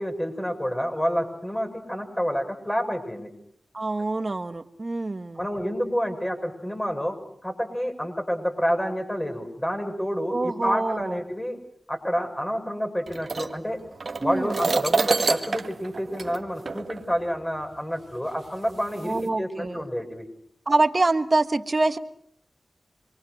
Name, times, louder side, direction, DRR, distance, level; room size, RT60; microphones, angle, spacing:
voice 1, 0.0-3.3 5.3-7.1 7.4-11.6 11.9-13.8 14.2-20.3, equal, 15° left, 5 dB, 6.9 m, -28 dB
voice 2, 3.7-5.5 10.3-11.2 14.2-14.6 19.0-19.9 20.7-22.0, right 2 dB, 45° right, 9 dB, 1.4 m, -25 dB
sound 1, 13.1-17.2 18.1-18.2 18.9-19.3, right 4 dB, 65° right, 1.9 m, -27 dB
27.0 x 22.5 x 6.5 m, 0.67 s
cardioid pair, 45°, 0 cm